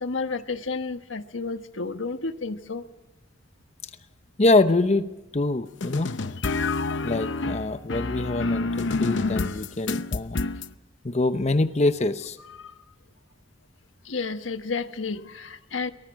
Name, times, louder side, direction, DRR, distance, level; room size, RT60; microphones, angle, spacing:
voice 1, 0.0-2.8 14.1-15.9, left 4 dB, 90° left, 9 dB, 1.3 m, -31 dB
voice 2, 4.4-6.2 7.0-10.4 11.0-12.4, left 2 dB, 35° left, 10 dB, 0.8 m, -24 dB
sound 1, 5.8-10.7, left 3 dB, 65° left, 0.8 m, -28 dB
24.0 x 19.0 x 6.3 m, 1.1 s
head